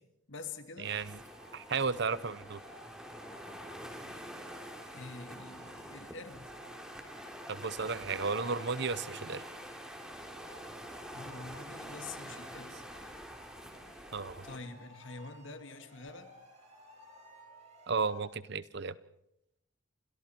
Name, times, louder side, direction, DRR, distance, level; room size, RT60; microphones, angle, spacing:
voice 1, 0.3-1.0 4.9-6.5 11.1-12.8 13.9-14.1 14.4-16.3, left 3 dB, 75° left, 8 dB, 2.3 m, -46 dB
sound 1, 0.8-14.6, equal, 5° right, 3.3 m, -46 dB
voice 2, 0.8-1.1 1.5-2.6 7.5-9.4 14.1-14.4 17.9-18.9, right 4 dB, 60° right, 17 dB, 0.9 m, -33 dB
sound 2, 1.2-18.2, equal, 35° right, 7.9 m, -57 dB
30.0 x 26.0 x 4.6 m, 0.82 s
head